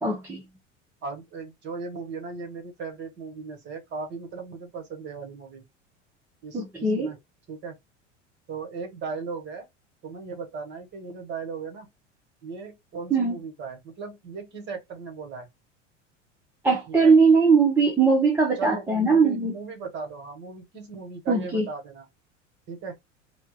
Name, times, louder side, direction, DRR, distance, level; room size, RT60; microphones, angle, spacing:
voice 1, 0.0-0.4 6.5-7.1 13.1-13.4 16.6-19.5 21.3-21.7, right 4 dB, 5° right, 0.4 m, -20 dB
voice 2, 1.0-5.6 6.4-7.2 7.5-7.8 8.5-9.6 10.0-11.9 12.4-15.5 16.9-17.1 18.6-22.0 22.7-22.9, right 4 dB, 30° right, 1.1 m, -37 dB
2.2 x 2.0 x 3.8 m
figure-of-eight pair, 80°, 37 cm